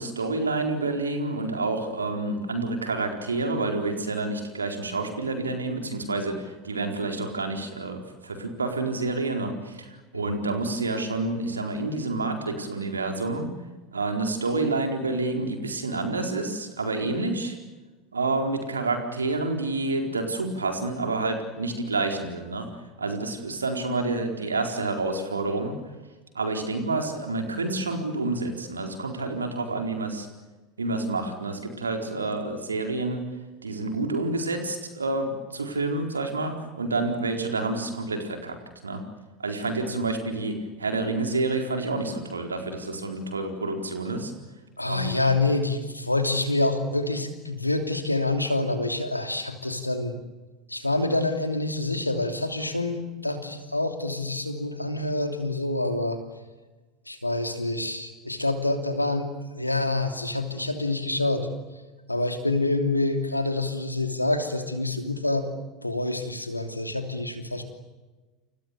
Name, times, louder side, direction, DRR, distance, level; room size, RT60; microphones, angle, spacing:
voice 1, 0.0-13.5 13.9-17.5 18.1-22.7 23.0-25.7 26.3-30.3 30.8-33.2 33.6-38.6 38.8-39.0 39.4-44.3 44.8-45.2, right 3 dB, 80° right, 4 dB, 4.3 m, -28 dB
voice 2, 44.8-50.2 50.7-56.2 57.1-61.5 62.1-65.5 65.8-67.6, left 2 dB, 90° left, 7 dB, 2.9 m, -27 dB
29.0 x 29.0 x 6.9 m, 1.2 s
figure-of-eight pair, 75°, 0 cm